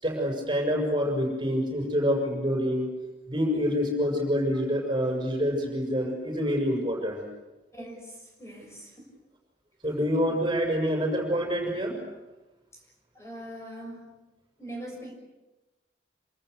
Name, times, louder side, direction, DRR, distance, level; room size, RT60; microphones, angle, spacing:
voice 1, 0.0-2.9 3.3-7.2 9.8-12.0, equal, 25° right, 0 dB, 6.7 m, -27 dB
voice 2, 7.7-9.0 10.2-10.4 12.7-14.1 14.6-15.1, right 1 dB, 15° left, 0 dB, 6.7 m, -42 dB
28.0 x 26.0 x 6.8 m, 1.1 s
head